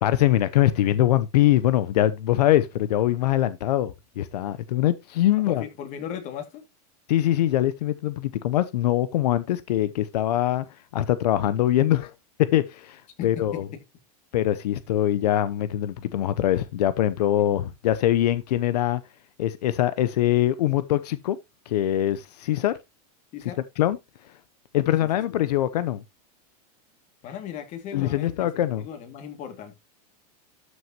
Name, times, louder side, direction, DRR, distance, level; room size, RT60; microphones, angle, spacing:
voice 1, 0.0-5.6 7.1-10.6 10.9-12.1 12.4-13.7 14.3-19.0 19.4-21.4 21.7-22.7 23.8-24.0 24.7-26.0 27.9-28.9, left 13 dB, 85° left, 0.8 m, -23 dB
voice 2, 5.4-6.6 13.2-13.6 23.3-23.6 27.2-29.7, left 9 dB, 35° left, 2.4 m, -37 dB
12.5 x 6.3 x 2.9 m
supercardioid pair, 150°, 20 cm